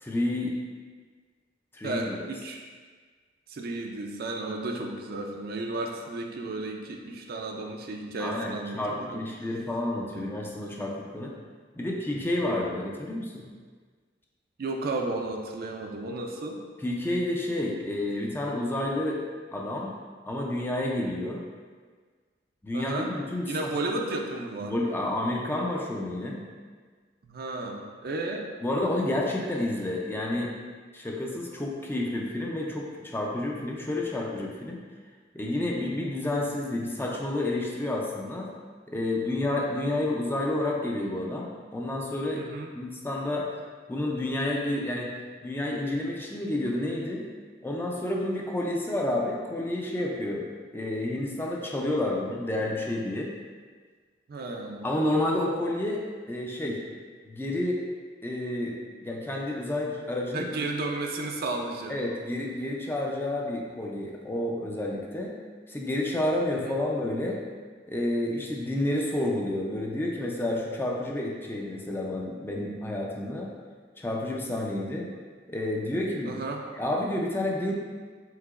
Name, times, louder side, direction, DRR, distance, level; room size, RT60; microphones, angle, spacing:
voice 1, 0.0-0.5 1.7-2.2 8.2-11.3 11.8-13.5 16.8-19.2 19.5-19.9 20.3-21.4 22.6-23.7 24.6-26.4 28.6-30.5 30.9-34.8 35.3-38.5 38.9-42.5 42.7-43.5 43.9-45.1 45.4-47.3 47.6-50.5 50.7-53.3 54.8-56.8 57.3-57.9 58.2-60.7 61.9-65.3 65.7-67.4 67.9-73.5 74.0-75.1 75.5-76.4 76.7-77.7, left 1 dB, 10° left, -1 dB, 0.4 m, -30 dB
voice 2, 1.8-2.6 3.5-9.2 10.1-10.3 14.6-16.6 22.7-23.1 23.5-24.7 27.2-28.5 42.3-42.7 54.3-54.9 60.3-62.0 66.6-66.8 76.3-76.6, right 2 dB, 55° right, 2 dB, 0.4 m, -33 dB
4.7 x 3.8 x 2.4 m, 1.5 s
head